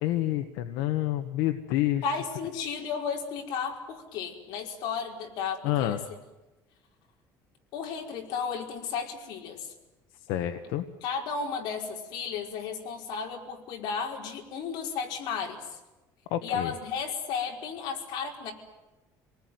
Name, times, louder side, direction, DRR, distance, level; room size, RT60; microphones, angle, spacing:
voice 1, 0.0-2.0 5.6-6.0 10.3-10.8 16.3-16.7, left 13 dB, 90° left, 8 dB, 1.4 m, -28 dB
voice 2, 2.0-6.0 7.7-9.7 11.0-15.8 16.4-18.5, left 6 dB, 70° left, 1 dB, 5.1 m, -34 dB
27.5 x 19.5 x 9.5 m, 1.1 s
cardioid pair, 140°, 8 cm